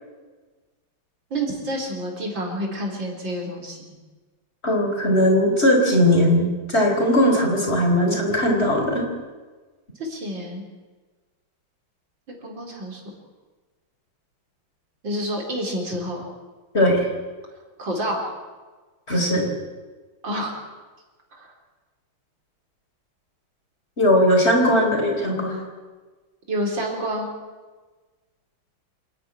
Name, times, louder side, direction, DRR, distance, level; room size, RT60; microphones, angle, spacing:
voice 1, 1.3-3.8 10.0-10.6 12.3-13.0 15.0-16.2 17.8-18.3 20.2-20.6 21.3-21.5 26.5-27.3, right 1 dB, 65° right, 0 dB, 4.9 m, -28 dB
voice 2, 4.6-9.0 16.7-17.1 19.1-19.5 24.0-25.6, left 1 dB, 30° left, 1 dB, 4.3 m, -19 dB
27.5 x 11.5 x 9.8 m, 1.3 s
omnidirectional pair, 2.3 m